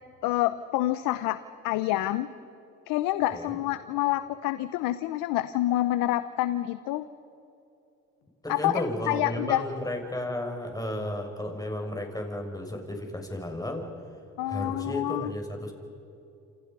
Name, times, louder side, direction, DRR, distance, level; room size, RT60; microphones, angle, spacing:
voice 1, 0.2-1.4 1.6-2.3 2.9-7.1 8.5-9.6 14.4-15.3, left 15 dB, 85° left, 13 dB, 0.8 m, -27 dB
voice 2, 8.4-13.8 14.5-15.7, left 1 dB, 10° left, 3 dB, 6.4 m, -33 dB
28.0 x 27.5 x 5.4 m, 2.8 s
supercardioid pair, 65°, 32 cm